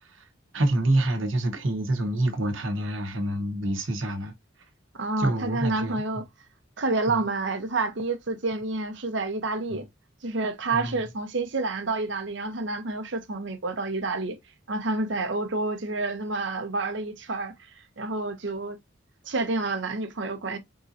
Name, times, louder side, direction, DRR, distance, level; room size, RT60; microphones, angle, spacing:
voice 1, 0.5-4.3 5.2-6.2 7.1-7.2 9.7-9.8 10.7-11.1, right 1 dB, 80° right, 1.1 m, -27 dB
voice 2, 5.0-6.2 6.8-9.9 10.2-14.4 14.7-18.8 19.2-20.6, right 3 dB, 65° right, 0.9 m, -29 dB
4.2 x 3.7 x 2.5 m
head